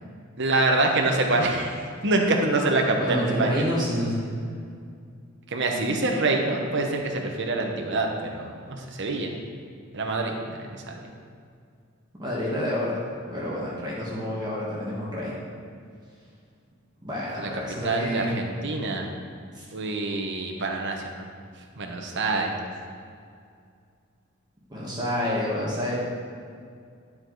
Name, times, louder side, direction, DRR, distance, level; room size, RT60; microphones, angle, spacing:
voice 1, 0.4-1.7 2.0-3.6 5.5-9.3 9.9-11.0 17.4-17.5 17.8-19.1 19.7-21.2 21.8-22.5, right 2 dB, 60° right, 2 dB, 1.0 m, -25 dB
voice 2, 3.0-4.5 12.1-13.0 13.3-15.4 17.0-18.3 19.5-19.6 24.7-26.0, equal, 20° right, -7 dB, 1.5 m, -28 dB
11.5 x 4.8 x 3.9 m, 2.3 s
head